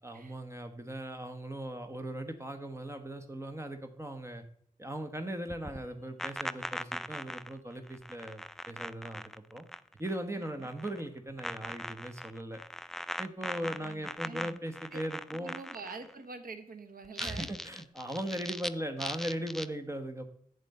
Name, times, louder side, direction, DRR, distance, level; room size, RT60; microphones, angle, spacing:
voice 1, 0.0-4.4 4.8-9.2 9.5-9.7 10.0-12.6 13.2-15.5 17.2-20.3, right 1 dB, 20° right, 6 dB, 1.1 m, -39 dB
sound 1, 5.5-10.2 10.4-11.0 11.4-16.1 17.0-18.7 19.0-19.7, equal, ahead, 0.3 m, -40 dB
voice 2, 10.4-10.7 13.6-14.6 14.9-15.0 15.3-17.5, right 4 dB, 80° right, 9 dB, 1.0 m, -46 dB
8.3 x 7.3 x 4.3 m, 0.64 s
wide cardioid pair, 85°, 15 cm